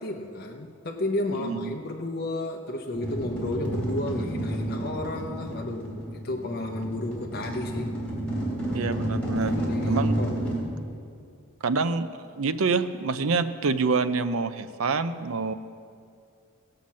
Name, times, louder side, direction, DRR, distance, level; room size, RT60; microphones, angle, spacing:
voice 1, 0.0-7.9 9.6-10.4, left 1 dB, 50° left, 1 dB, 0.8 m, -32 dB
voice 2, 1.3-1.7 8.7-9.6 9.9-10.2 11.6-15.5, right 4 dB, 75° right, 11 dB, 0.6 m, -27 dB
sound 1, 2.9-10.6, right 1 dB, 5° left, 3.1 m, -30 dB
17.5 x 5.8 x 7.4 m, 2.4 s
head